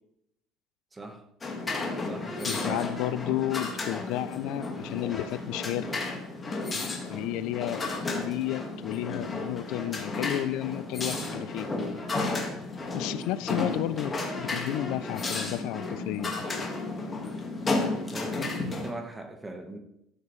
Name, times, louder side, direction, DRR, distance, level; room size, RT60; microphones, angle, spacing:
voice 1, 0.9-1.2 2.0-2.6 8.5-8.7 18.1-19.8, right 1 dB, 15° right, 5 dB, 1.1 m, -40 dB
sound 1, 1.4-18.9, left 3 dB, 20° left, 1.6 m, -33 dB
voice 2, 2.5-6.0 6.7-7.9 8.1-11.7 12.9-16.3, left 14 dB, 75° left, 15 dB, 0.4 m, -32 dB
12.5 x 7.4 x 3.1 m, 0.81 s
cardioid pair, 135°, 0 cm